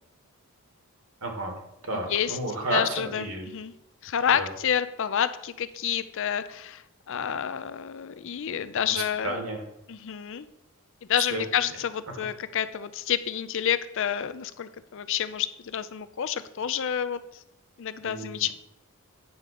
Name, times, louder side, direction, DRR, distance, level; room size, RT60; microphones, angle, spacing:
voice 1, 1.2-1.5 1.8-3.5 4.3-4.5 8.9-9.6 11.3-11.4 12.1-12.2 18.0-18.5, right 2 dB, 70° right, 3 dB, 1.8 m, -32 dB
voice 2, 1.9-2.4 2.7-3.7 4.0-9.4 9.9-10.5 11.1-17.2 17.8-18.5, left 8 dB, 60° left, 13 dB, 0.5 m, -29 dB
9.4 x 3.8 x 6.5 m, 0.85 s
head